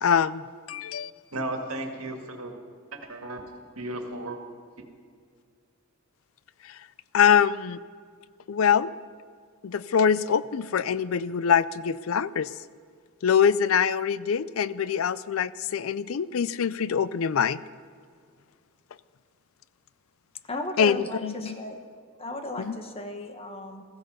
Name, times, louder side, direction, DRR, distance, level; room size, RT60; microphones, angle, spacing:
voice 1, 0.0-1.1 6.6-6.8 7.1-7.8 8.5-8.9 9.6-12.5 13.2-17.6 20.8-21.5 22.6-22.8, left 7 dB, 75° left, 17 dB, 0.4 m, -24 dB
voice 2, 1.3-2.5 2.9-3.4 3.8-4.4, right 1 dB, 80° right, 4 dB, 1.9 m, -34 dB
voice 3, 20.5-21.8 22.2-23.8, left 2 dB, 30° left, 5 dB, 1.4 m, -35 dB
15.5 x 15.5 x 5.4 m, 2.1 s
head